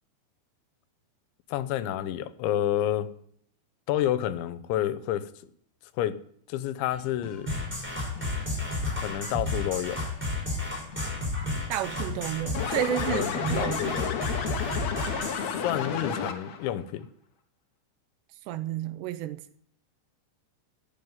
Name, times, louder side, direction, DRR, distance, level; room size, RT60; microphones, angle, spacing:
voice 1, 1.5-3.1 3.9-5.3 6.0-6.2 6.5-7.5 9.0-10.0 13.1-14.2 15.3-17.1, left 12 dB, 85° left, 3.2 m, -29 dB
sound 1, 6.9-12.9, left 4 dB, 40° left, 8.9 m, -45 dB
sound 2, 7.5-15.4, left 2 dB, ahead, 5.3 m, -32 dB
voice 2, 11.7-14.1 18.5-19.4, right 12 dB, 80° right, 2.7 m, -31 dB
sound 3, 12.5-16.7, left 7 dB, 65° left, 1.7 m, -32 dB
13.5 x 8.7 x 9.3 m
omnidirectional pair, 5.2 m